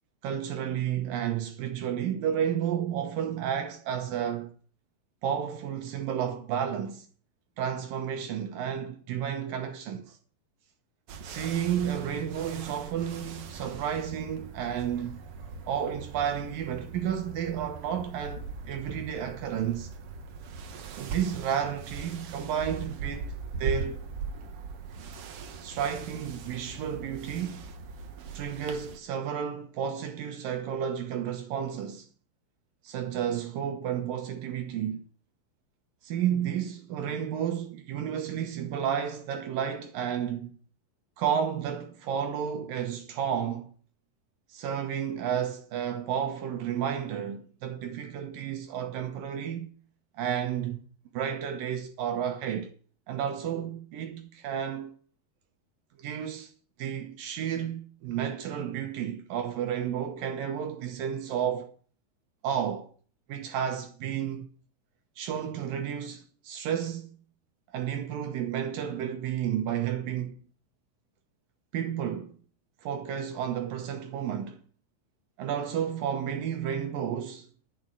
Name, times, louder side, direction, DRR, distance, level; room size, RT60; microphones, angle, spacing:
voice 1, 0.2-4.5 5.2-7.1 7.6-10.2 11.2-15.2 15.7-19.9 20.9-23.3 23.6-24.0 25.6-27.7 28.3-32.1 32.8-35.0 36.0-40.6 41.2-43.7 44.5-49.7 50.1-50.8 51.1-52.7 53.1-54.9 56.0-56.5 56.8-61.7 62.4-62.9 63.3-64.5 65.2-67.2 67.7-70.5 71.7-72.3 72.8-74.6 75.4-77.5, right 9 dB, 70° right, 2.6 m, -32 dB
sound 1, 11.1-29.0, right 5 dB, 90° right, 1.3 m, -40 dB
10.5 x 6.3 x 8.9 m
omnidirectional pair, 4.4 m